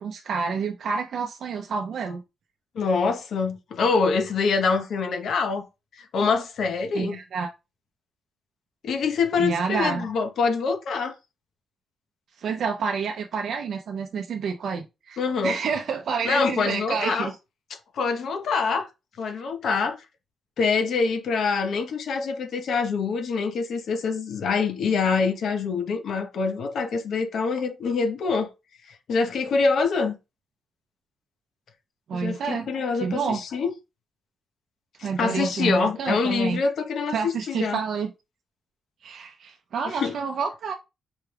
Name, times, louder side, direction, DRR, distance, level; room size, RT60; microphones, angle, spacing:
voice 1, 0.0-2.2 6.9-7.5 9.4-10.0 12.4-17.3 32.1-32.7 32.9-33.4 35.0-36.6 37.1-38.1 39.0-40.7, right 5 dB, 65° right, 0.5 m, -29 dB
voice 2, 2.7-5.6 5.9-7.2 8.8-11.1 15.2-15.6 16.2-17.3 17.9-18.9 19.2-20.0 20.6-28.5 28.9-30.1 32.1-33.7 35.0-37.8 39.8-40.2, left 4 dB, 70° left, 0.9 m, -25 dB
4.5 x 2.3 x 3.3 m
cardioid pair, 115°, 0 cm